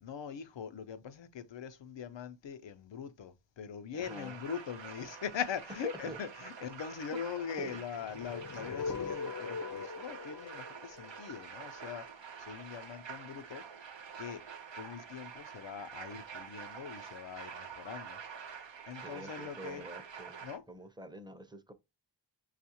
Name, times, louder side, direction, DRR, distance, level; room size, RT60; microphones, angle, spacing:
voice 1, 0.0-12.1 12.4-13.7 14.2-14.4 14.8-18.2 18.9-19.9 20.4-20.6, left 7 dB, 85° left, 0.6 m, -42 dB
voice 2, 3.9-4.4 6.1-6.2 7.6-7.8 19.0-21.7, right 2 dB, 10° right, 0.5 m, -47 dB
sound 1, 4.0-20.6, right 6 dB, 80° right, 0.7 m, -47 dB
sound 2, 7.9-12.0, left 5 dB, 45° left, 0.4 m, -41 dB
6.1 x 2.4 x 2.8 m
wide cardioid pair, 60°, 43 cm